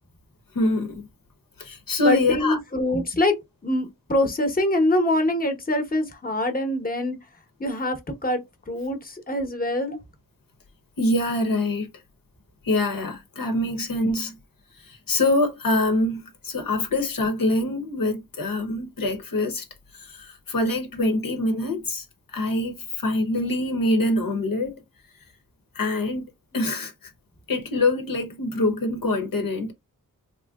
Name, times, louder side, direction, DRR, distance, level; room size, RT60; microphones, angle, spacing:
voice 1, 0.5-1.1 1.6-2.6 11.0-11.9 12.6-14.4 14.8-19.7 19.9-24.8 25.7-26.2 26.5-27.1 27.5-29.7, left 2 dB, 70° left, 0.9 m, -25 dB
voice 2, 2.0-3.3 3.6-7.2 7.6-8.4 8.7-10.0, left 1 dB, 25° left, 0.9 m, -24 dB
3.2 x 2.7 x 2.3 m
wide cardioid pair, 75°, 35 cm